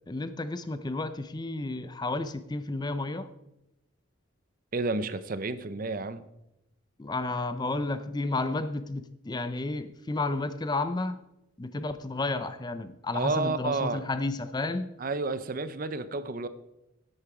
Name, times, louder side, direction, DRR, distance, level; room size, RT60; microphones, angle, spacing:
voice 1, 0.1-3.3 7.0-11.2 11.6-14.9, left 2 dB, 20° left, 12 dB, 0.4 m, -32 dB
voice 2, 4.7-6.2 13.1-14.0 15.0-16.5, right 3 dB, 40° right, 13 dB, 0.6 m, -30 dB
10.5 x 8.7 x 4.8 m, 0.88 s
head